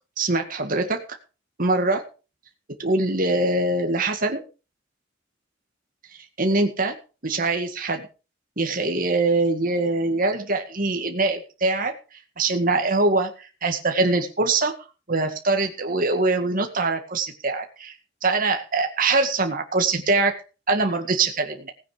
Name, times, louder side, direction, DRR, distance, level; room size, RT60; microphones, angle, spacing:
voice 1, 0.2-1.0 1.6-2.1 2.8-4.4 6.4-7.0 7.2-8.1 8.6-11.9 12.4-14.7 15.1-17.9 18.2-20.4 20.7-21.7, right 3 dB, 45° right, 4 dB, 2.0 m, -23 dB
17.0 x 9.2 x 5.1 m, 0.34 s
head